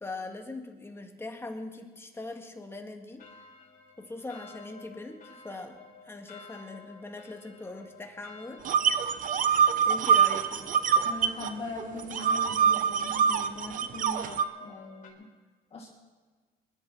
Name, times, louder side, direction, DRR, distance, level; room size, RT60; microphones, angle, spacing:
voice 1, 0.0-3.2 4.0-8.6 9.3-10.8, left 2 dB, 15° left, 4 dB, 1.8 m, -41 dB
sound 1, 3.2-15.1, left 4 dB, 50° left, 4.1 m, -52 dB
sound 2, 8.7-11.5 11.8-14.4, right 7 dB, 50° right, 0.8 m, -24 dB
voice 2, 11.0-15.3 15.7-15.9, left 2 dB, 35° left, -2 dB, 2.0 m, -41 dB
21.5 x 12.0 x 4.4 m, 1.4 s
cardioid pair, 110°, 17 cm